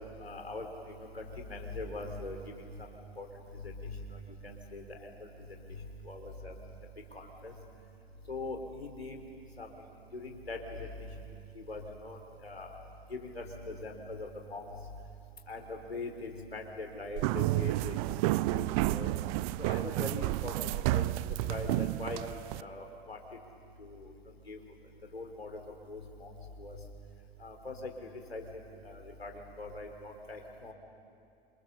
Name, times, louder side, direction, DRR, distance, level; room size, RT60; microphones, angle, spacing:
voice 1, 0.2-0.7 1.2-2.4 3.2-3.3 4.4-4.8 6.1-6.5 7.1-7.5 8.3-9.2 9.6-9.7 10.1-10.6 11.7-12.7 13.1-14.6 15.5-18.2 18.5-18.6 18.9-19.1 19.6-21.2 21.5-23.2 23.8-24.0 24.5-24.6 25.1-25.5 25.9-26.3 26.6-26.7 27.4-27.9 28.3-28.4 28.9-29.3 29.6-30.7, left 2 dB, 85° left, 3 dB, 3.8 m, -41 dB
sound 1, 17.2-22.6, right 18 dB, 35° right, 0.5 m, -31 dB
28.5 x 26.5 x 7.0 m, 2.4 s
figure-of-eight pair, 95°, 30 cm